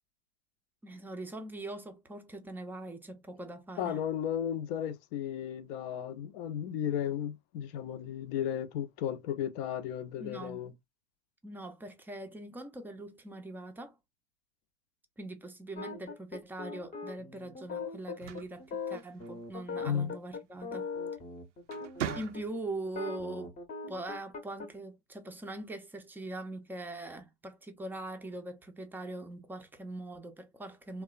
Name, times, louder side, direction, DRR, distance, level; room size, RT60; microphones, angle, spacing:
voice 1, 0.8-4.0 10.2-10.8 11.4-14.0 15.2-20.9 22.1-23.6 23.9-31.0, right 2 dB, 5° right, 0.4 m, -42 dB
voice 2, 3.8-10.7 19.8-20.1, left 9 dB, 55° left, 0.5 m, -34 dB
sound 1, 15.8-22.4 22.8-24.7, left 4 dB, 20° left, 0.7 m, -40 dB
sound 2, 18.0-19.5 21.0-21.2 21.6-22.8, right 10 dB, 85° right, 0.5 m, -40 dB
2.9 x 2.1 x 2.3 m
hypercardioid pair, 100°, 35 cm